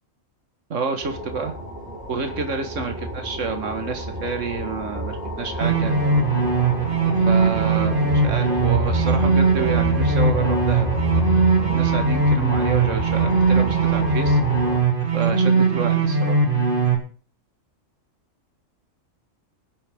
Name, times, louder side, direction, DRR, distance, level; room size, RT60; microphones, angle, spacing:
voice 1, 0.7-1.5 2.1-5.9 7.3-11.0 11.6-14.4 15.1-16.4, right 4 dB, 70° right, 6 dB, 2.1 m, -29 dB
sound 1, 1.0-14.8, left 1 dB, 5° right, 7.3 m, -30 dB
sound 2, 5.6-16.9, right 4 dB, 40° right, 2.6 m, -20 dB
21.5 x 8.6 x 3.6 m, 0.39 s
omnidirectional pair, 1.3 m